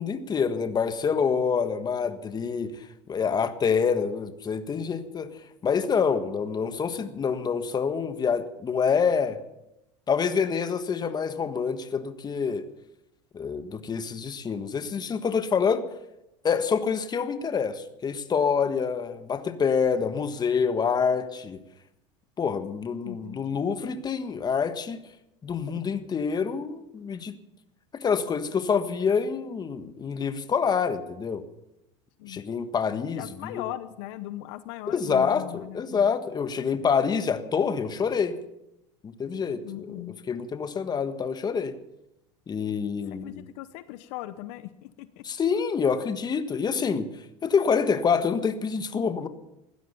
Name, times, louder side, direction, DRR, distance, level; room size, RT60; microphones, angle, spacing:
voice 1, 0.0-5.3 5.6-9.4 10.1-12.6 13.3-15.9 16.4-21.6 22.4-25.0 25.4-27.3 28.0-31.4 32.3-33.6 34.9-38.4 39.0-41.7 42.5-43.4 45.2-47.1 47.4-49.3, left 6 dB, 25° left, 10 dB, 1.5 m, -27 dB
voice 2, 23.0-23.7 32.2-32.4 33.1-36.1 39.6-40.2 43.1-45.3, left 15 dB, 70° left, 13 dB, 0.9 m, -39 dB
16.5 x 12.0 x 7.0 m, 0.87 s
supercardioid pair, 110°, 15 cm